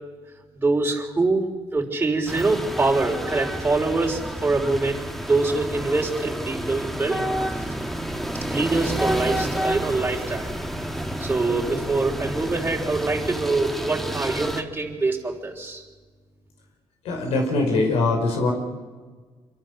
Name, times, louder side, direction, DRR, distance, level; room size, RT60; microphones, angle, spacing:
voice 1, 0.6-1.5 1.7-7.2 8.5-10.5 11.2-15.8, right 3 dB, 20° right, -1 dB, 3.5 m, -24 dB
sound 1, 2.3-14.6, equal, ahead, 2.0 m, -30 dB
voice 2, 17.1-18.5, left 3 dB, 85° left, 2 dB, 5.4 m, -22 dB
26.5 x 24.0 x 6.6 m, 1.4 s
cardioid pair, 105°, 10 cm